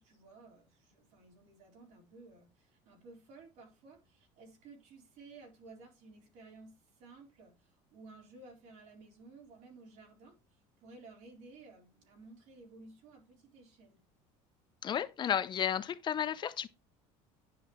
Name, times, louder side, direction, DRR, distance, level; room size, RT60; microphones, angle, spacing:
voice 1, 0.0-14.0, right 3 dB, 65° right, 4.2 m, -55 dB
voice 2, 14.8-16.7, left 9 dB, 35° left, 0.6 m, -33 dB
10.5 x 5.8 x 3.1 m
cardioid pair, 130°, 14 cm